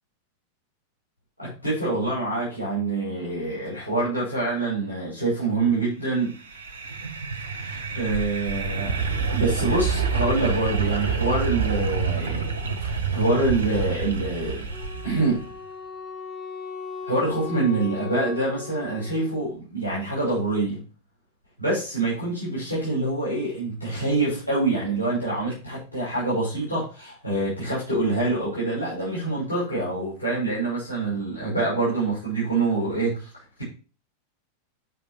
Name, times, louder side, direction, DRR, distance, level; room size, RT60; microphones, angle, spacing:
voice 1, 1.4-6.3 7.6-9.0 9.3-12.5 12.8-14.6 15.0-15.4 17.1-20.8 21.6-33.3, right 2 dB, 80° left, -9 dB, 5.4 m, -26 dB
sound 1, 6.3-15.5, right 5 dB, 70° right, 1.2 m, -27 dB
Wind instrument woodwind instrument, 14.7-19.5, left 5 dB, 5° left, 2.6 m, -38 dB
9.4 x 5.3 x 4.4 m, 0.35 s
figure-of-eight pair, 90°, 0 cm